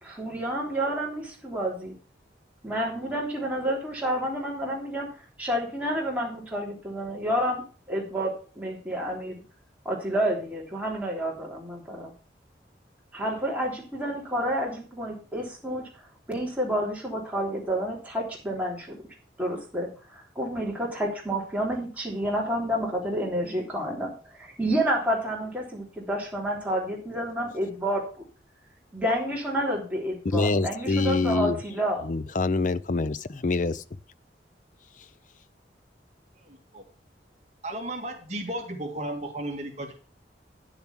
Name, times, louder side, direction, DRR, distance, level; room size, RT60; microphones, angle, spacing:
voice 1, 0.0-1.9 2.6-5.1 5.4-7.6 7.9-9.4 9.8-12.1 13.1-15.9 16.3-19.0 19.4-28.1 28.9-32.0, equal, 10° right, -3 dB, 3.4 m, -29 dB
voice 2, 30.2-31.6 32.0-33.8, left 3 dB, 45° left, 16 dB, 0.5 m, -25 dB
voice 3, 36.5-36.8 37.6-39.9, right 1 dB, 40° right, 2 dB, 1.9 m, -34 dB
10.5 x 7.1 x 6.0 m, 0.37 s
head